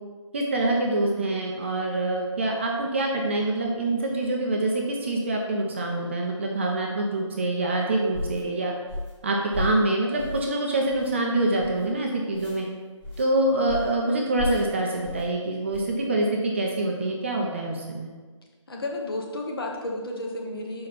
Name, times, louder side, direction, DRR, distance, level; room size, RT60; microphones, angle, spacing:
voice 1, 0.3-8.7 9.2-12.7 13.2-18.1, right 2 dB, 25° right, 0 dB, 0.5 m, -25 dB
sound 1, 8.1-8.4 8.9-9.2 9.5-9.8 10.2-10.5 10.9-11.1 11.6-11.9 12.3-12.6 13.0-13.3 13.7-14.0 14.4-14.7 15.0-15.3 15.7-15.9, left 2 dB, 10° left, 1.6 m, -33 dB
voice 2, 18.7-20.9, left 2 dB, 50° left, 0 dB, 1.2 m, -32 dB
5.6 x 4.1 x 5.2 m, 1.4 s
figure-of-eight pair, 155°, 16 cm